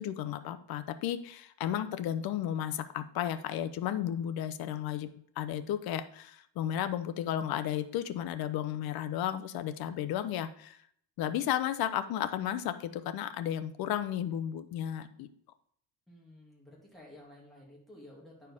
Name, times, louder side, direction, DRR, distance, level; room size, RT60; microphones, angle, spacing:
voice 1, 0.0-5.1 5.4-10.8 11.2-15.3, left 11 dB, 50° left, 11 dB, 0.7 m, -33 dB
voice 2, 16.1-18.5, left 1 dB, ahead, -5 dB, 2.6 m, -53 dB
9.6 x 4.6 x 3.5 m, 0.63 s
cardioid pair, 135°, 47 cm